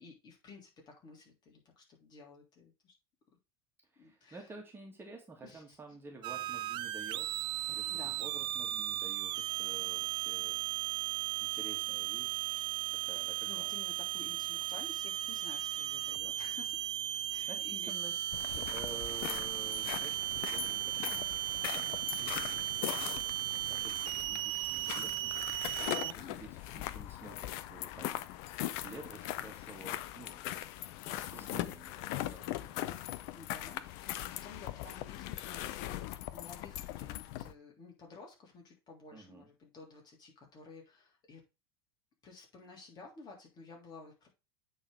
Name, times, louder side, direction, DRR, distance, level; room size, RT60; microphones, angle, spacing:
voice 1, 0.0-2.9 4.0-4.5 5.4-5.6 7.6-8.2 13.5-16.9 17.3-17.9 25.9-26.9 33.1-41.4 42.2-44.3, left 4 dB, 30° left, 0 dB, 3.2 m, -53 dB
voice 2, 3.9-7.3 7.7-7.9 8.2-10.6 11.4-12.6 12.9-13.7 17.5-21.2 21.7-25.4 26.2-28.3 28.8-30.6 31.1-33.0 39.1-39.5, right 3 dB, 15° right, 1 dB, 2.1 m, -51 dB
sound 1, 6.2-26.1, right 15 dB, 35° right, 0.4 m, -36 dB
sound 2, 18.3-37.5, left 14 dB, 50° left, 0.6 m, -40 dB
8.7 x 4.1 x 4.8 m, 0.27 s
figure-of-eight pair, 80°, 13 cm